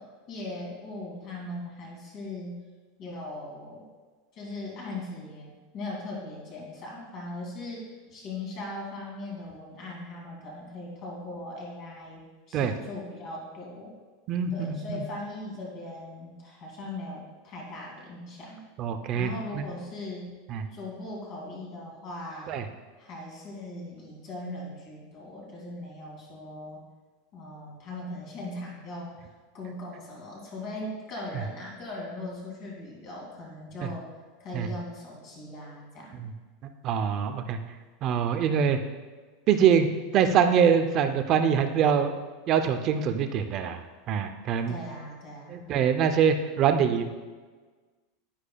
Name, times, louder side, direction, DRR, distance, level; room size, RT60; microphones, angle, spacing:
voice 1, 0.0-2.6 3.0-3.9 4.3-14.0 14.5-18.7 19.1-20.3 20.7-22.5 23.0-26.8 27.3-29.2 29.5-34.1 34.4-36.1 44.7-45.7, left 2 dB, 30° left, -3 dB, 2.4 m, -39 dB
voice 2, 14.3-15.0 18.8-19.3 19.5-19.6 20.5-20.6 22.5-22.6 34.5-34.7 36.2-36.3 36.8-37.6 38.0-38.8 39.5-39.9 40.1-42.1 42.5-43.8 44.1-44.7 45.5-47.1, right 7 dB, 30° right, 8 dB, 0.5 m, -24 dB
10.0 x 9.9 x 2.3 m, 1.4 s
supercardioid pair, 180°, 0 cm